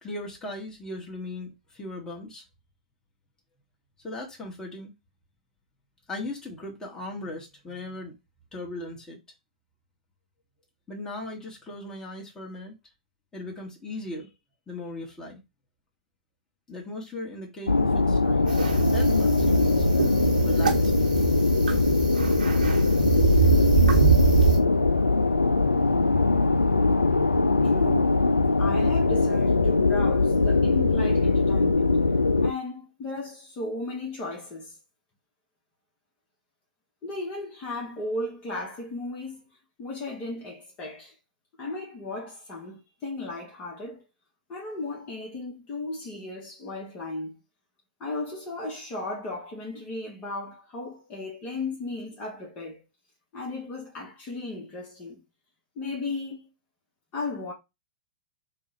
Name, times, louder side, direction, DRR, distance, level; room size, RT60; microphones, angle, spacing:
voice 1, 0.0-2.4 4.0-4.9 6.1-8.1 8.5-9.2 10.9-12.7 13.3-14.3 14.7-15.4 16.7-18.6 18.9-19.9 20.4-20.9, left 2 dB, 15° left, 1.6 m, -38 dB
sound 1, 17.7-32.5, left 3 dB, 90° left, 0.3 m, -22 dB
sound 2, 18.5-24.6, right 5 dB, 80° right, 1.1 m, -24 dB
voice 2, 27.6-28.2 28.6-32.0 32.4-34.8 37.0-39.4 39.8-41.1 41.6-44.0 44.5-47.4 48.0-52.8 53.3-55.2 55.7-56.4 57.1-57.5, left 2 dB, 30° left, 1.4 m, -35 dB
3.6 x 2.5 x 4.2 m
figure-of-eight pair, 100°, 4 cm